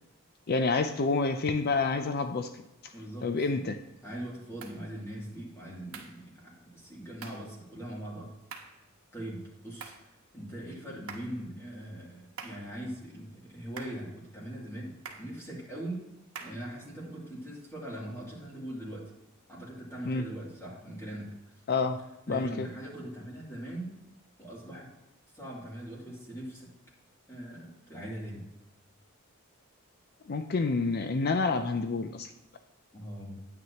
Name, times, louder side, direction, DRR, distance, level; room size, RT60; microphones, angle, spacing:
voice 1, 0.5-2.5 3.2-3.8 20.1-20.3 21.7-22.0 22.3-22.7 30.3-32.3, left 4 dB, 45° left, 8 dB, 0.5 m, -28 dB
voice 2, 2.9-3.7 4.0-8.3 9.1-14.9 15.2-16.0 16.4-19.0 19.5-21.3 22.3-23.9 24.4-24.9 25.3-26.7 27.3-28.4 32.9-33.3, right 1 dB, 15° left, -5 dB, 2.7 m, -41 dB
sound 1, 4.6-4.8 5.9-6.2 7.2-7.5 8.5-8.8 9.8-10.1 11.1-11.4 12.4-12.7 13.8-14.1 15.0-15.3 16.3-16.7, right 6 dB, 70° right, 1.2 m, -45 dB
9.3 x 9.3 x 2.9 m, 0.95 s
head